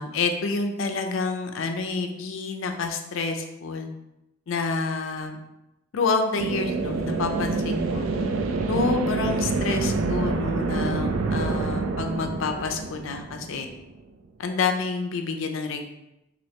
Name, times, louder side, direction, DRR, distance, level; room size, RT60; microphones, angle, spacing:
voice 1, 0.0-3.9 4.5-5.4 5.9-8.1 8.7-13.7 14.4-15.8, left 4 dB, 70° left, 5 dB, 0.4 m, -28 dB
sound 1, 6.4-13.9, right 3 dB, 80° right, 0.4 m, -27 dB
3.1 x 2.6 x 2.8 m, 0.90 s
head